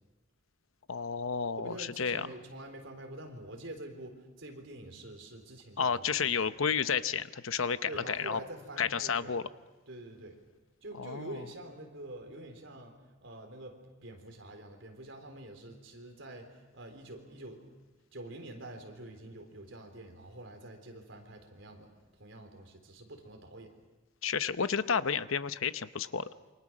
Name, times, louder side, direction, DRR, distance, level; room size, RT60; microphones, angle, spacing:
voice 1, 0.9-2.3 5.8-8.4 8.8-9.4 11.0-11.4 24.2-26.3, left 6 dB, 85° left, 13 dB, 0.8 m, -31 dB
voice 2, 1.6-6.1 7.9-9.3 9.9-10.4 10.8-17.6 18.1-23.8, right 1 dB, 70° right, 4 dB, 3.8 m, -46 dB
28.0 x 24.5 x 6.3 m, 1.2 s
head